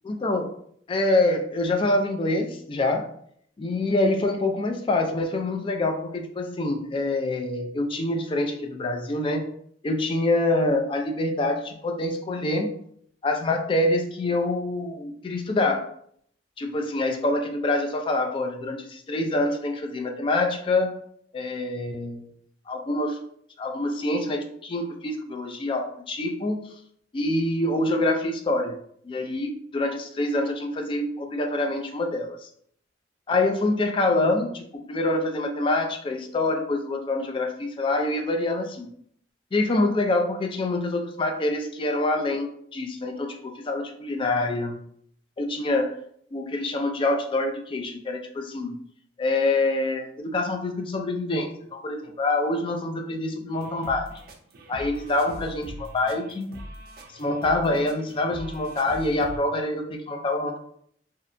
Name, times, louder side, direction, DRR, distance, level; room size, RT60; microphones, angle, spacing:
voice 1, 0.0-0.5 0.9-3.1 3.6-9.5 9.8-12.7 13.2-15.9 16.6-21.0 21.3-22.3 22.7-23.2 23.6-26.7 27.1-28.8 29.0-32.5 33.3-38.9 39.5-44.8 45.4-45.9 46.3-48.8 49.2-54.1 54.7-56.5 57.1-60.6, left 2 dB, 30° left, 4 dB, 0.3 m, -26 dB
sound 1, 53.5-59.4, equal, 55° right, 0.4 m, -42 dB
2.7 x 2.1 x 2.5 m, 0.66 s
head